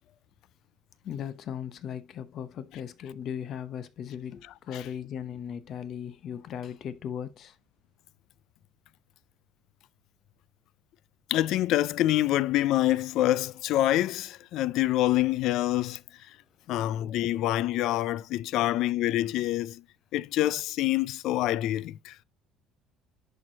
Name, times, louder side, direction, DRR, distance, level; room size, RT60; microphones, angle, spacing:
voice 1, 1.0-7.6 16.8-16.9, left 8 dB, 45° left, 0.8 m, -37 dB
voice 2, 11.3-16.0 16.7-19.8 20.1-22.2, left 14 dB, 60° left, 0.4 m, -26 dB
10.5 x 4.5 x 2.8 m
cardioid pair, 160°, 0 cm